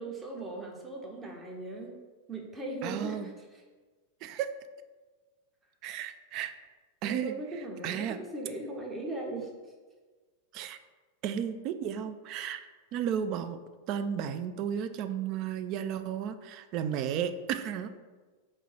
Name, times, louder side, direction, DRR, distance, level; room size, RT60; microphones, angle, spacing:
voice 1, 0.0-1.9 2.3-3.6 7.0-9.5, right 2 dB, 15° right, 0 dB, 0.9 m, -39 dB
voice 2, 2.8-3.3 4.2-4.5 5.8-6.5 7.0-7.3 7.8-8.2 10.5-10.8 11.2-12.6 12.9-13.6 13.9-18.0, right 9 dB, 40° right, 10 dB, 0.3 m, -33 dB
3.7 x 3.2 x 4.4 m, 1.3 s
figure-of-eight pair, 90°, 0 cm